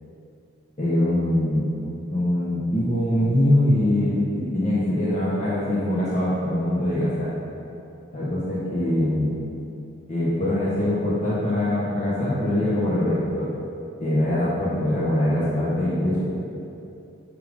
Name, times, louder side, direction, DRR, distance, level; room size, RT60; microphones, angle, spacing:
voice 1, 0.8-7.3 8.1-9.4 10.1-13.5 14.0-16.2, left 1 dB, 35° left, -10 dB, 1.2 m, -23 dB
8.6 x 5.3 x 3.6 m, 2.8 s
head